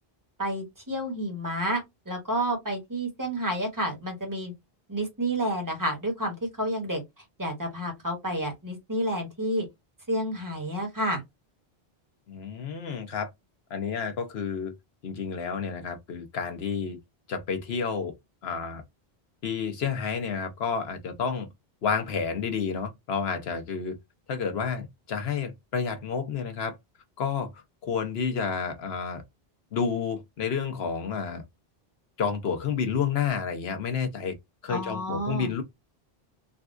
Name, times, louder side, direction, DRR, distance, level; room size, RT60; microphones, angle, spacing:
voice 1, 0.4-4.5 4.9-7.0 7.4-9.7 10.1-11.2 34.7-35.5, right 1 dB, 20° right, 1.2 m, -30 dB
voice 2, 12.3-13.3 13.7-14.8 15.0-17.0 17.3-18.1 18.4-18.8 19.4-21.5 21.8-24.0 24.3-26.8 27.2-27.5 27.8-29.2 29.7-31.4 32.2-34.4 34.6-35.6, left 6 dB, 75° left, 1.1 m, -30 dB
3.9 x 2.3 x 2.5 m
omnidirectional pair, 1.0 m